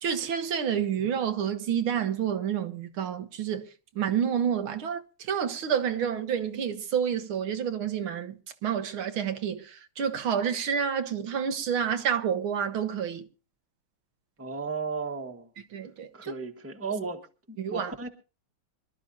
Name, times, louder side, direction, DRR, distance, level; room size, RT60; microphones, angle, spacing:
voice 1, 0.0-3.7 4.0-13.3 15.7-16.3 17.6-17.9, right 8 dB, 75° right, 1.9 m, -29 dB
voice 2, 14.4-15.5 16.1-18.1, right 4 dB, 5° right, 1.3 m, -35 dB
25.5 x 12.5 x 2.7 m
omnidirectional pair, 2.4 m